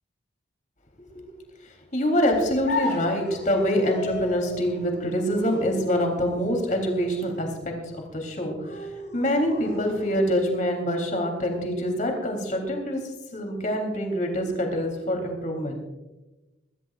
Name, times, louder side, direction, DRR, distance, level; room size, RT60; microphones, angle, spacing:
voice 1, 1.6-13.0 13.3-15.7, equal, 45° left, 2 dB, 3.5 m, -25 dB
sound 1, 2.7-10.6, left 3 dB, 70° left, 3.6 m, -36 dB
22.0 x 14.5 x 2.5 m, 1.1 s
head